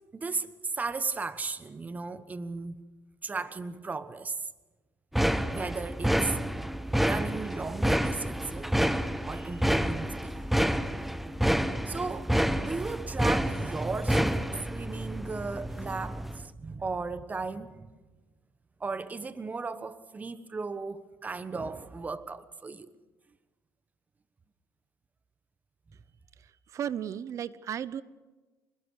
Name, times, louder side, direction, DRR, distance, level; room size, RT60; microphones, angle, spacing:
voice 1, 0.1-2.8 3.2-4.5 5.2-6.4 7.0-8.8 9.3-10.4 11.8-17.9 18.8-22.9, right 4 dB, 25° right, 1.3 m, -36 dB
sound 1, 5.1-16.4, equal, 5° right, 0.9 m, -29 dB
voice 2, 26.7-28.0, right 9 dB, 50° right, 0.8 m, -34 dB
24.5 x 21.5 x 6.5 m
supercardioid pair, 95°, 7 cm